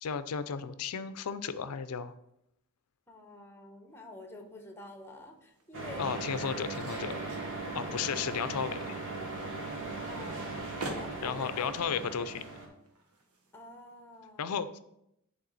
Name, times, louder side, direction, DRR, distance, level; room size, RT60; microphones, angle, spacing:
voice 1, 0.0-2.1 6.0-7.1 7.7-9.0 11.2-12.4 14.4-14.8, left 6 dB, 80° left, 13 dB, 0.5 m, -34 dB
voice 2, 3.1-6.0 10.1-11.7 13.5-14.8, left 2 dB, 10° left, 4 dB, 1.0 m, -48 dB
sound 1, 3.9-14.2, right 2 dB, 75° right, 1.1 m, -49 dB
sound 2, 5.7-12.7, right 3 dB, 60° right, 1.7 m, -38 dB
10.5 x 3.7 x 4.0 m, 0.80 s
head